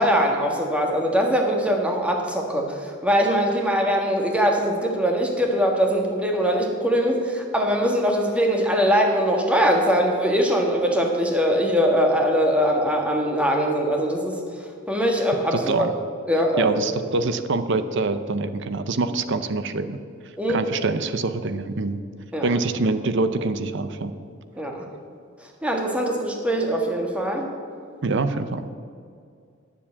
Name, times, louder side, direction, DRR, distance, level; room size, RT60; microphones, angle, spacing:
voice 1, 0.0-14.4 14.9-15.9 16.3-16.8 20.4-20.6 22.3-22.5 24.6-24.8 25.6-27.5, equal, 5° right, 1 dB, 1.4 m, -22 dB
voice 2, 15.5-15.9 16.6-20.0 20.5-22.0 22.4-24.1 28.0-28.7, right 3 dB, 60° right, 11 dB, 0.6 m, -25 dB
9.8 x 7.3 x 8.4 m, 2.2 s
head